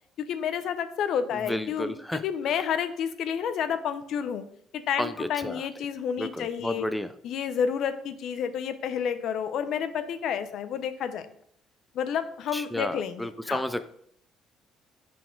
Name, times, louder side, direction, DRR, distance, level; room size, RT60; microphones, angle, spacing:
voice 1, 0.2-4.4 4.7-6.9 7.2-11.3 11.9-13.6, left 8 dB, 65° left, 11 dB, 0.6 m, -30 dB
voice 2, 1.3-2.2 5.0-5.6 6.2-7.1 12.5-13.8, equal, 5° left, 10 dB, 0.3 m, -32 dB
5.9 x 4.2 x 4.4 m, 0.66 s
cardioid pair, 125°, 0 cm